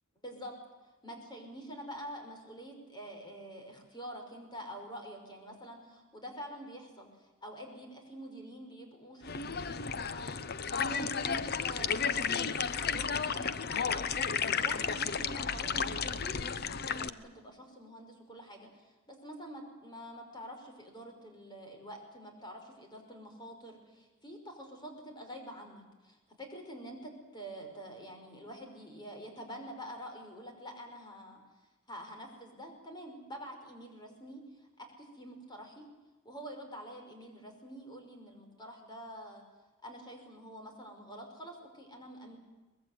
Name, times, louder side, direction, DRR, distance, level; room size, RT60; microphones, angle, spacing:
voice 1, 0.2-0.6 1.0-10.4 10.7-31.4 31.9-34.4 34.8-35.9 36.2-39.4 39.8-42.4, equal, 20° left, 3 dB, 5.6 m, -47 dB
sound 1, 9.2-17.1, left 6 dB, 50° left, 0.9 m, -33 dB
23.5 x 20.5 x 9.4 m, 1.1 s
head